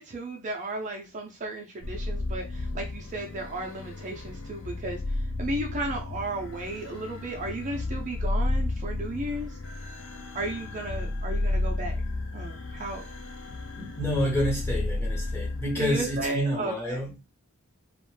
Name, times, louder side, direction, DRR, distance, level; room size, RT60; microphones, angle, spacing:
voice 1, 0.0-5.0 5.4-9.6 10.3-12.0 12.3-13.0 15.8-17.0, right 2 dB, 35° right, 0.4 m, -34 dB
sound 1, 1.8-16.3, left 2 dB, 65° left, 0.4 m, -32 dB
voice 2, 13.8-17.3, equal, 10° left, 0.8 m, -29 dB
2.4 x 2.1 x 3.1 m
head